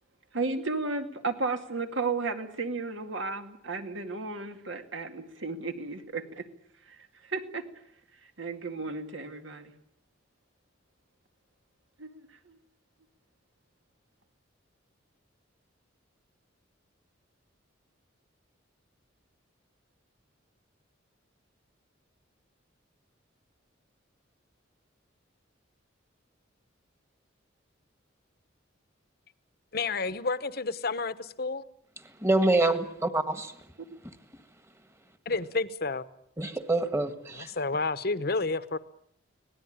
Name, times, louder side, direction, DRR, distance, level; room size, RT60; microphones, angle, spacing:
voice 1, 0.3-6.5 6.9-7.7 8.2-9.7 12.0-12.6, right 3 dB, 75° right, 2.3 m, -34 dB
voice 2, 29.7-31.7 35.3-36.0 37.4-38.8, left 3 dB, 50° left, 1.0 m, -30 dB
voice 3, 32.2-33.5 36.4-37.5, right 2 dB, 15° right, 1.6 m, -26 dB
25.5 x 18.0 x 8.8 m
head